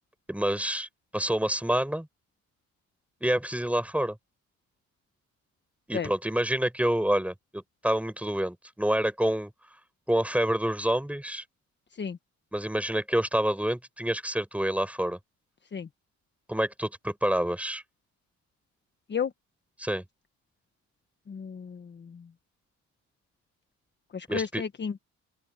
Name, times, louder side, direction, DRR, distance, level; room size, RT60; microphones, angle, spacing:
voice 1, 0.3-0.9 1.1-2.1 3.2-4.2 5.9-9.5 10.1-11.4 12.5-15.2 16.5-17.8 19.8-20.0 24.3-24.6, right 1 dB, 5° right, 6.5 m, -27 dB
voice 2, 21.3-22.2 24.1-24.9, left 7 dB, 35° left, 1.3 m, -33 dB
open air
cardioid pair, 90°, 30 cm